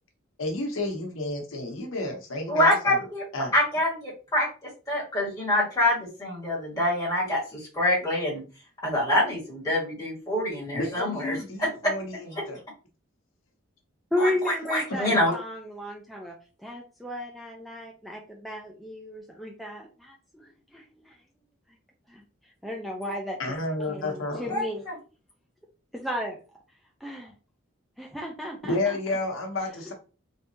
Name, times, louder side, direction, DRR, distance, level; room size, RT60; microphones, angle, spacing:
voice 1, 0.4-3.0 3.3-3.5 10.7-12.6 23.4-24.5 28.7-29.9, left 2 dB, 80° left, 0.9 m, -31 dB
voice 2, 2.5-3.2 3.5-4.5 4.9-8.4 8.8-11.7 12.3-12.4 14.2-15.3 24.5-24.9, left 1 dB, 20° left, 1.6 m, -26 dB
voice 3, 14.1-21.2 22.1-22.2 22.6-23.4 23.9-24.8 25.9-26.4 27.0-27.3 28.0-29.0, left 1 dB, ahead, 0.4 m, -34 dB
3.4 x 2.7 x 2.7 m
head